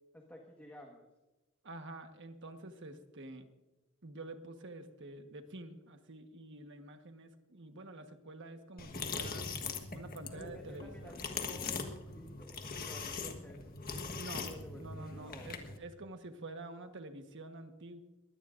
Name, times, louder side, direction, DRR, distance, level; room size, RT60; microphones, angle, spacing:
voice 1, 0.1-1.1 10.3-13.6 14.4-15.6, left 1 dB, 10° left, 0 dB, 1.5 m, -52 dB
voice 2, 1.6-3.5 4.0-9.5 9.9-11.2 14.2-18.0, right 2 dB, 55° right, 7 dB, 1.4 m, -48 dB
sound 1, 8.8-15.8, left 4 dB, 40° left, 1.4 m, -41 dB
22.0 x 16.5 x 2.6 m, 1.1 s
head